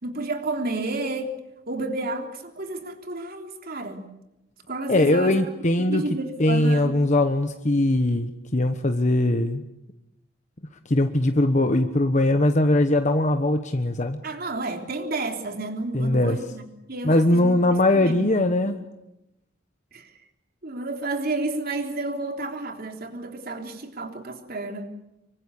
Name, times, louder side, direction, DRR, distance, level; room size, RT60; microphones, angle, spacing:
voice 1, 0.0-1.3 1.7-4.1 4.7-5.4 5.9-7.0 14.2-17.6 17.9-18.3 19.9-20.1 20.6-24.9, right 2 dB, 50° right, 4 dB, 3.5 m, -31 dB
voice 2, 4.9-6.0 6.4-9.6 10.8-14.2 15.9-16.4 17.0-18.8, left 1 dB, 40° left, 7 dB, 1.2 m, -21 dB
26.0 x 24.5 x 8.4 m, 0.91 s
head